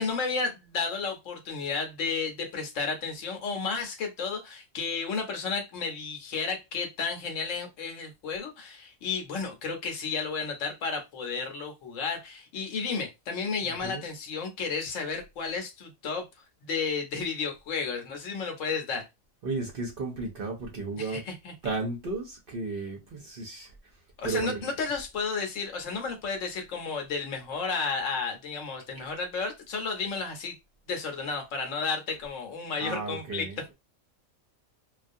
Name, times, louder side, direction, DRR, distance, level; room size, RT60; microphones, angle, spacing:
voice 1, 0.0-16.3 16.6-19.1 21.0-21.5 24.2-30.6 30.8-33.5, left 4 dB, 75° left, 1.0 m, -32 dB
voice 2, 13.6-14.1 19.4-21.3 21.6-23.7 24.2-24.7 31.3-31.4 32.8-33.7, right 3 dB, 55° right, 0.7 m, -34 dB
2.3 x 2.3 x 2.6 m
omnidirectional pair, 1.4 m